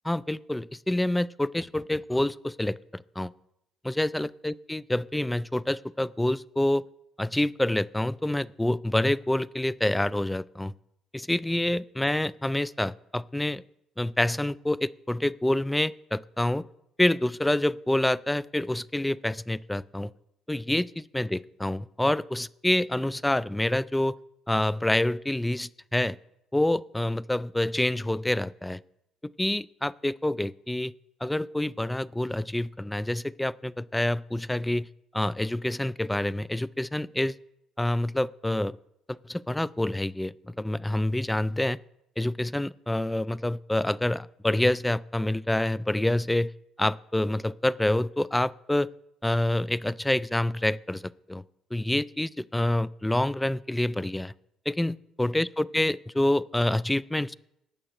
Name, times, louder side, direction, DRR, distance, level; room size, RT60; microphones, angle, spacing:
voice 1, 0.0-3.3 3.8-6.8 7.2-10.7 11.1-13.6 14.0-16.6 17.0-20.1 20.5-24.2 24.5-26.2 26.5-28.8 29.4-30.9 31.2-34.9 35.1-37.4 37.8-38.8 39.1-41.8 42.2-46.5 46.8-48.9 49.2-51.4 51.7-54.3 54.7-57.3, left 1 dB, 10° left, 20 dB, 0.3 m, -27 dB
19.0 x 8.7 x 3.0 m, 0.81 s
cardioid pair, 90°, 0 cm